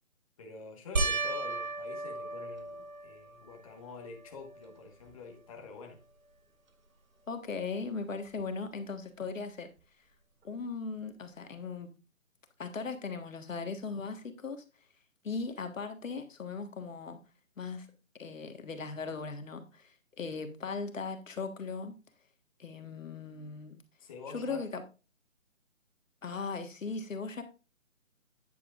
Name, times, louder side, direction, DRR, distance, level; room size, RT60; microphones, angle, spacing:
voice 1, 0.4-6.0 24.0-24.6, left 4 dB, 25° left, 1.4 m, -47 dB
sound 1, 1.0-3.6 4.2-4.7 5.1-5.2 8.4-8.5, right 3 dB, 80° right, 2.0 m, -35 dB
voice 2, 7.3-9.7 10.4-11.9 12.6-14.6 15.2-17.2 17.6-17.9 18.2-22.0 22.6-23.8 24.3-24.8 26.2-27.4, left 4 dB, 65° left, 1.5 m, -38 dB
9.4 x 9.1 x 2.5 m
hypercardioid pair, 160°, 41 cm